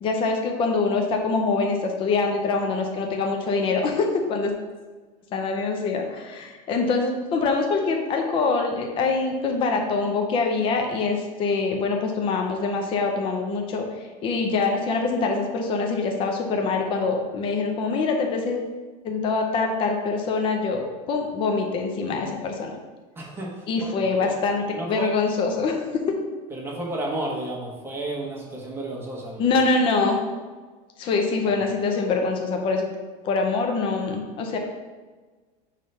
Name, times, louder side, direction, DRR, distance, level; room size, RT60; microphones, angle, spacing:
voice 1, 0.0-4.5 5.3-18.7 19.0-20.8 21.1-22.7 23.7-26.1 29.4-30.3 31.0-32.9 33.2-34.6, left 4 dB, 30° left, 2 dB, 0.6 m, -24 dB
voice 2, 23.1-23.9 24.2-24.3 24.7-25.1 26.5-29.5 31.4-31.6, right 2 dB, 15° right, -3 dB, 1.0 m, -32 dB
5.4 x 3.3 x 5.4 m, 1.4 s
cardioid pair, 160°, 17 cm